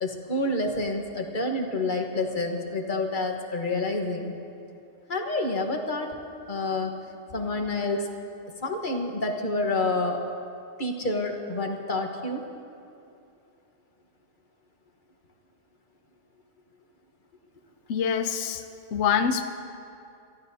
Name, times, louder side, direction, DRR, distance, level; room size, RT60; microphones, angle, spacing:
voice 1, 0.0-4.3 5.1-6.1 6.5-6.9 7.3-8.1 8.6-10.2 10.8-12.4, left 2 dB, 40° left, 2 dB, 1.4 m, -28 dB
voice 2, 17.9-18.6 18.9-19.4, left 7 dB, 65° left, 8 dB, 0.9 m, -25 dB
28.5 x 14.5 x 2.8 m, 2.6 s
omnidirectional pair, 1.3 m